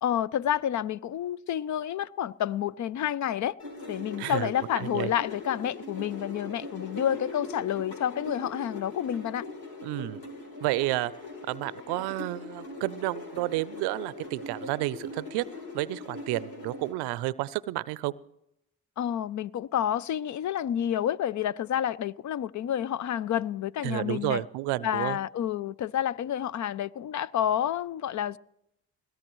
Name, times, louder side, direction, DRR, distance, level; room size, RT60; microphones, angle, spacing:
voice 1, 0.0-3.6 3.9-9.5 19.0-24.4 24.8-28.4, left 10 dB, 50° left, 0.5 m, -29 dB
sound 1, 3.6-16.9, left 2 dB, 75° left, 3.3 m, -41 dB
voice 2, 4.2-4.5 4.8-5.1 9.8-10.2 10.6-11.1 11.5-15.5 15.7-18.1 23.8-25.2, right 18 dB, 85° right, 0.6 m, -31 dB
20.5 x 17.0 x 3.1 m
supercardioid pair, 55°, 39 cm